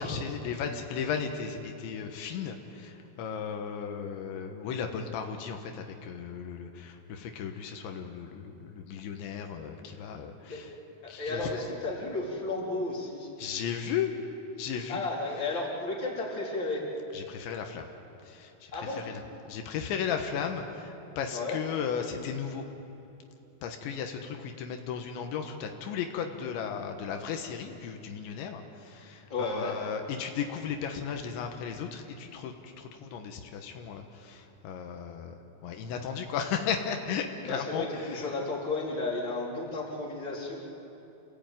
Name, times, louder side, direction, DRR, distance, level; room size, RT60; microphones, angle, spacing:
voice 1, 0.0-10.7 11.1-11.6 13.4-14.1 14.6-15.0 17.1-17.9 18.2-19.2 19.5-22.7 23.6-38.2, left 7 dB, 85° left, 4 dB, 3.6 m, -35 dB
voice 2, 11.0-13.3 14.9-16.8 18.7-19.0 21.3-21.6 29.3-29.8 37.5-40.6, left 3 dB, 25° left, -4 dB, 4.1 m, -33 dB
28.0 x 16.5 x 9.1 m, 2.8 s
omnidirectional pair, 5.2 m